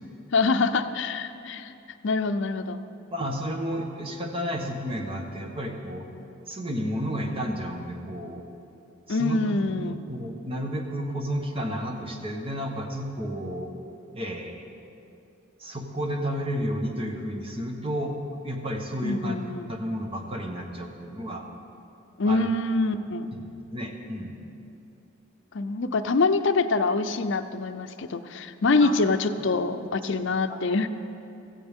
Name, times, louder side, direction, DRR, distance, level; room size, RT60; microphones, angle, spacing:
voice 1, 0.3-1.7 2.0-2.8 9.1-10.0 19.0-19.7 22.2-23.3 25.5-30.9, left 3 dB, 60° left, 9 dB, 0.6 m, -25 dB
voice 2, 3.1-6.1 6.5-8.4 9.1-13.7 14.1-14.5 15.6-18.2 18.4-19.4 19.7-21.4 22.3-22.5 23.3-24.3 28.8-29.0 30.0-30.2 30.5-30.6, equal, 25° right, 2 dB, 1.3 m, -32 dB
16.5 x 14.5 x 3.7 m, 2.8 s
head